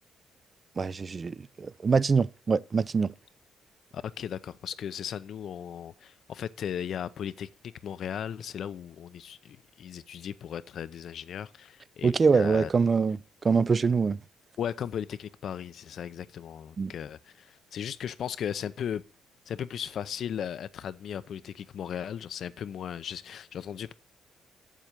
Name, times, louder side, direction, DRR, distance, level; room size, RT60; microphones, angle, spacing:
voice 1, 0.8-3.1 12.0-13.2 13.4-14.2 16.8-16.9, right 5 dB, 35° right, 0.4 m, -24 dB
voice 2, 3.9-12.7 14.6-19.0 19.5-23.9, left 9 dB, 65° left, 0.6 m, -36 dB
7.4 x 7.3 x 6.6 m
cardioid pair, 90°, 0 cm